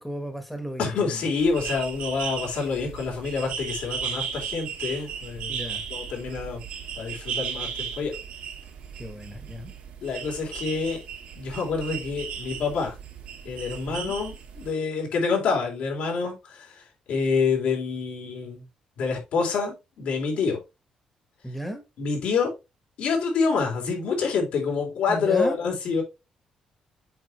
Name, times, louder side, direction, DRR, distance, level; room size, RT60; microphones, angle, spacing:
voice 1, 0.0-1.3 5.5-5.8 9.0-9.7 13.9-14.2 21.4-21.8 25.1-25.6, equal, 5° left, 1.3 m, -34 dB
voice 2, 0.8-5.5 5.9-6.6 7.0-7.7 8.0-8.1 10.0-11.0 11.4-13.0 13.5-18.6 19.0-20.6 22.0-22.5 23.0-26.0, left 5 dB, 80° left, 3.5 m, -27 dB
sound 1, 1.4-14.7, right 7 dB, 80° right, 2.1 m, -36 dB
7.8 x 5.2 x 3.1 m
cardioid pair, 135°, 2 cm